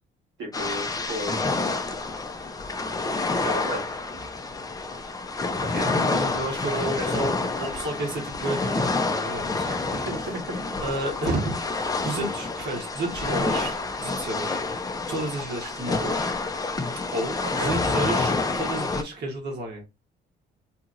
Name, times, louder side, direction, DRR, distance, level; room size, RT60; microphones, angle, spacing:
voice 1, 0.4-1.4 3.2-4.0 5.6-6.4 6.6-7.1 9.6-10.6 17.4-17.8, right 1 dB, 90° right, -2 dB, 1.4 m, -34 dB
sound 1, 0.5-19.0, left 3 dB, 20° left, 0.4 m, -28 dB
voice 2, 5.7-10.0 10.8-14.7 15.1-16.3 17.1-19.8, right 1 dB, 60° right, 0 dB, 1.1 m, -31 dB
2.8 x 2.7 x 2.4 m, 0.25 s
cardioid pair, 90°, 20 cm